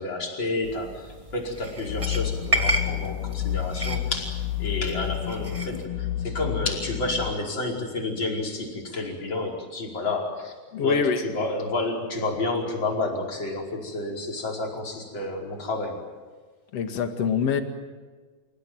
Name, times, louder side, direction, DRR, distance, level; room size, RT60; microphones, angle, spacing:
voice 1, 0.0-4.3 4.6-10.5 10.8-16.0, left 2 dB, 25° left, 0 dB, 5.4 m, -30 dB
sound 1, 0.6-5.8, right 1 dB, 25° right, 0.6 m, -32 dB
sound 2, 1.9-7.3, left 13 dB, 70° left, 3.1 m, -30 dB
voice 2, 10.7-11.2 16.7-17.6, left 6 dB, 45° left, 7 dB, 2.3 m, -24 dB
29.5 x 17.0 x 9.3 m, 1.4 s
omnidirectional pair, 5.0 m